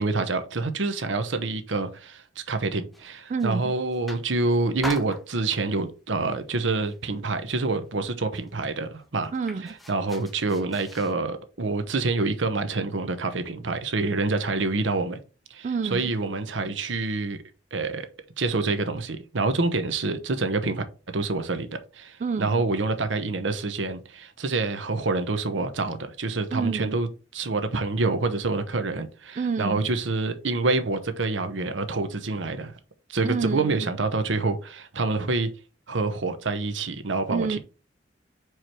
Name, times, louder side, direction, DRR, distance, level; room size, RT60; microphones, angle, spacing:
voice 1, 0.0-9.3 9.6-15.2 15.5-17.4 17.7-18.1 18.4-20.8 21.1-21.7 21.9-27.1 27.3-32.7 33.1-35.5 35.9-37.6, right 3 dB, 85° right, 0.9 m, -27 dB
sound 1, 2.9-3.6 3.9-4.4 4.8-5.8 6.3-6.6 6.8-7.7 8.1-8.2 8.3-11.2, left 1 dB, ahead, 0.8 m, -41 dB
voice 2, 3.3-3.7 9.3-9.7 15.6-16.1 22.2-22.6 26.5-27.0 29.4-29.9 33.2-33.9 37.3-37.6, right 5 dB, 40° right, 0.4 m, -28 dB
4.8 x 4.5 x 4.7 m
head